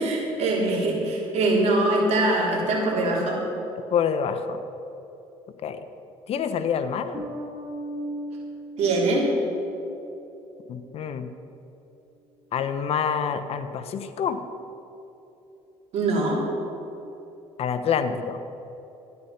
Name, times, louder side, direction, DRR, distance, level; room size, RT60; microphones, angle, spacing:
voice 1, 0.0-3.4 8.8-9.3 15.9-16.4, right 2 dB, 65° right, -2 dB, 3.4 m, -23 dB
voice 2, 3.9-4.6 5.6-5.8 6.3-7.2 10.7-11.3 12.5-14.4 17.6-18.4, left 7 dB, 55° left, 9 dB, 0.9 m, -27 dB
Bass guitar, 7.1-10.2, right 1 dB, 40° right, 2.8 m, -37 dB
13.0 x 10.0 x 5.8 m, 3.0 s
cardioid pair, 100°, 12 cm